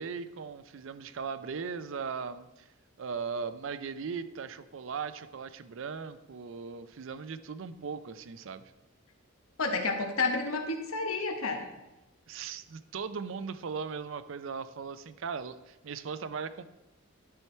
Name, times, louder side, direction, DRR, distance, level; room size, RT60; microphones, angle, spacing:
voice 1, 0.0-2.7 3.0-8.7 12.3-16.6, right 5 dB, 65° right, 13 dB, 0.5 m, -38 dB
voice 2, 9.6-11.7, left 3 dB, 85° left, 5 dB, 1.1 m, -30 dB
11.0 x 4.5 x 4.4 m, 0.99 s
head